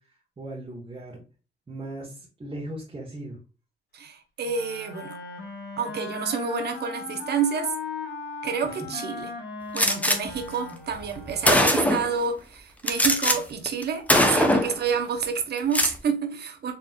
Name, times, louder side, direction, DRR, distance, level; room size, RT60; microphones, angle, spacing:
voice 1, 0.4-1.2 1.7-3.4 8.6-8.7 14.4-14.5, right 1 dB, 25° right, 1.3 m, -37 dB
voice 2, 3.9-5.2 5.8-7.7 8.4-9.3 9.7-16.7, right 6 dB, 55° right, 0.9 m, -29 dB
Wind instrument woodwind instrument, 4.4-11.8, left 4 dB, 55° left, 1.5 m, -38 dB
Gunshot gunfire, 9.8-10.2 11.0-11.1 11.4-12.1 12.9-13.4 13.7-13.8 14.1-14.8 15.6-16.0, left 1 dB, 5° left, 0.7 m, -20 dB
4.3 x 3.3 x 2.3 m
cardioid pair, 90°, 20 cm